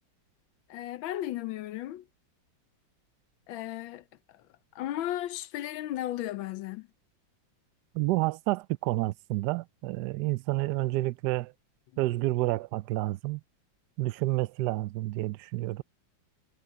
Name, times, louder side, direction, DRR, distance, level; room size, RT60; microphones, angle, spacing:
voice 1, 0.7-2.0 3.5-4.0 4.7-6.9, left 13 dB, 85° left, 1.5 m, -35 dB
voice 2, 7.9-11.5 12.0-13.4 14.0-15.8, right 19 dB, 75° right, 1.0 m, -29 dB
omnidirectional pair, 2.1 m